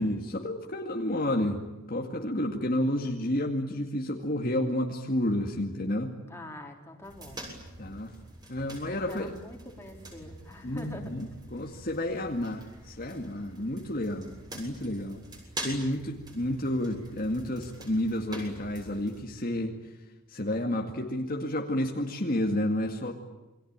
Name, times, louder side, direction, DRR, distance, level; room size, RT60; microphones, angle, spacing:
voice 1, 0.0-6.2 7.8-8.1 8.5-9.3 10.6-15.2 15.6-19.7 20.3-23.1, left 1 dB, 40° left, 2 dB, 2.2 m, -30 dB
voice 2, 6.3-7.5 8.9-11.1, equal, 10° left, 1 dB, 3.9 m, -44 dB
sound 1, 7.0-19.2, right 1 dB, 20° right, 7.0 m, -45 dB
28.5 x 23.0 x 8.9 m, 1.1 s
head